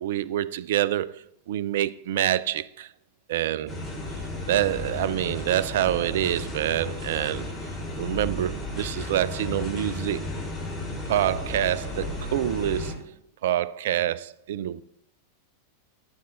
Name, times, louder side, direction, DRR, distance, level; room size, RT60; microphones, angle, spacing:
voice 1, 0.0-2.9 3.3-3.8 4.5-7.5 8.0-10.3 11.1-13.1 13.4-14.8, right 12 dB, 55° right, 0.4 m, -26 dB
sound 1, 3.7-12.9, left 2 dB, 5° left, 3.5 m, -34 dB
14.5 x 7.9 x 2.6 m
figure-of-eight pair, 90°, 0 cm